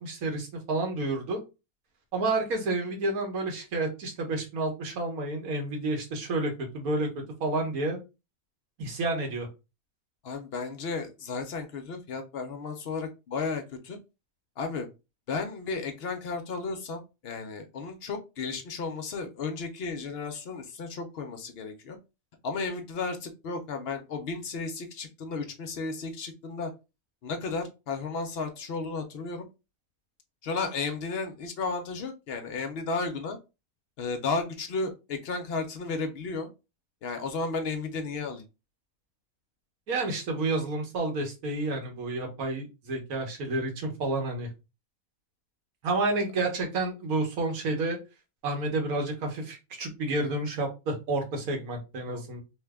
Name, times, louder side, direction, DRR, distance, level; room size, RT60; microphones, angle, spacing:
voice 1, 0.0-1.4 2.1-8.0 8.8-9.5 39.9-44.5 45.8-48.0 48.4-52.4, right 2 dB, 90° right, 2 dB, 1.4 m, -30 dB
voice 2, 10.2-14.0 14.6-14.9 15.3-22.0 22.4-26.7 27.2-29.5 30.4-33.4 34.0-36.5 37.0-38.4, left 4 dB, 65° left, 5 dB, 0.6 m, -33 dB
3.1 x 2.2 x 3.4 m, 0.27 s
omnidirectional pair, 1.5 m